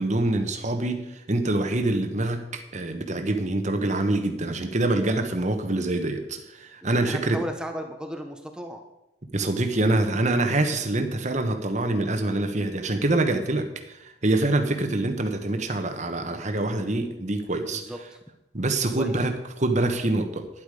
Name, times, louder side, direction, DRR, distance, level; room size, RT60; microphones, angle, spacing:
voice 1, 0.0-7.4 9.3-17.8 18.5-20.5, right 2 dB, 40° right, 6 dB, 1.3 m, -25 dB
voice 2, 6.8-8.8 17.6-18.2 19.0-19.1, equal, 5° right, 4 dB, 1.0 m, -35 dB
12.0 x 10.5 x 5.0 m, 0.92 s
head